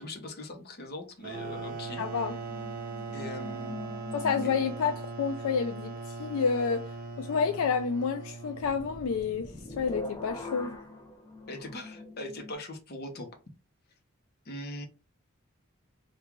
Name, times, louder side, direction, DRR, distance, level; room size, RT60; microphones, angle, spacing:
voice 1, 0.0-2.1 3.1-3.8 4.4-4.5 11.5-13.3 14.5-14.9, left 1 dB, 45° left, 0.8 m, -41 dB
sound 1, 1.2-9.7, right 4 dB, 40° right, 0.6 m, -40 dB
sound 2, 1.6-5.0 8.6-12.5, left 2 dB, 15° left, 0.5 m, -43 dB
voice 2, 2.0-2.4 4.1-10.8, left 5 dB, 70° left, 0.3 m, -29 dB
3.6 x 2.3 x 3.0 m
head